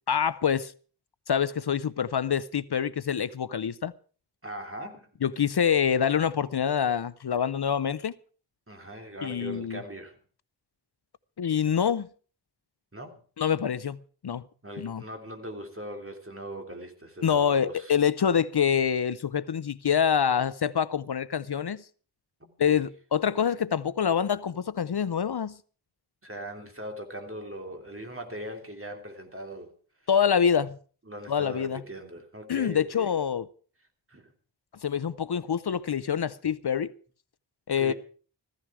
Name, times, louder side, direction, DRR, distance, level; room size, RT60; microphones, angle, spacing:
voice 1, 0.1-0.7 1.3-3.9 5.2-8.1 9.2-9.8 11.4-12.1 13.4-14.0 14.2-14.4 14.8-15.0 17.2-21.8 22.6-25.6 30.1-30.8 31.3-31.8 32.5-33.5 34.8-36.9 37.7-37.9, left 7 dB, 65° left, 0.6 m, -26 dB
voice 2, 4.4-5.1 8.7-10.2 12.9-13.2 14.6-18.0 22.4-22.8 26.2-29.7 31.1-33.1 34.1-34.3 37.8-37.9, right 1 dB, 30° right, 3.1 m, -40 dB
15.0 x 14.5 x 4.8 m
wide cardioid pair, 60°, 43 cm